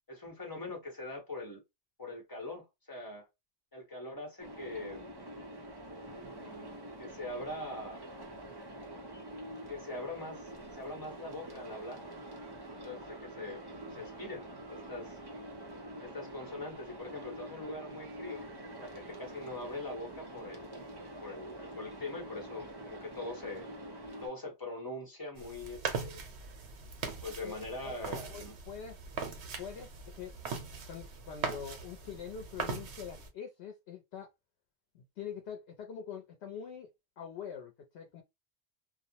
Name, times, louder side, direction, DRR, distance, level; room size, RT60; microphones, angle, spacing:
voice 1, 0.1-1.6 2.0-3.3 3.7-5.3 6.1-8.0 9.7-12.0 12.8-13.6 13.9-15.2 16.0-18.4 18.8-20.8 21.2-23.7 24.2-26.2 27.2-28.6, left 2 dB, 20° left, 0.9 m, -42 dB
sound 1, 4.4-24.3, right 1 dB, 30° right, 0.5 m, -46 dB
voice 2, 13.6-14.1 27.4-27.6 27.8-28.0 28.3-29.0 29.6-30.4 30.9-34.3 34.9-38.2, left 7 dB, 75° left, 0.8 m, -44 dB
sound 2, 25.4-33.3, right 5 dB, 90° right, 1.0 m, -40 dB
2.4 x 2.0 x 2.7 m
omnidirectional pair, 1.1 m